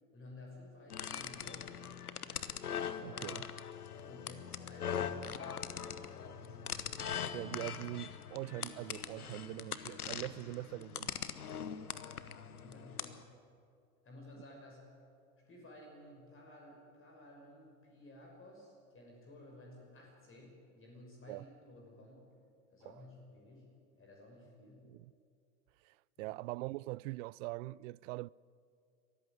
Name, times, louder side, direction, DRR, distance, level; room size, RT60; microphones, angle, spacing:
voice 1, 0.1-2.1 2.8-3.2 3.9-7.2 12.2-13.2 14.0-14.9 15.5-22.3 22.7-23.7 24.0-24.9 26.2-26.4, left 1 dB, 30° left, 5.8 m, -55 dB
sound 1, 0.9-13.2, left 8 dB, 90° left, 1.0 m, -42 dB
voice 2, 3.0-3.4 7.3-11.1 21.3-21.4 22.9-23.0 24.8-25.1 25.8-28.3, right 20 dB, 60° right, 0.5 m, -43 dB
22.5 x 14.5 x 9.7 m
hypercardioid pair, 85°, 44 cm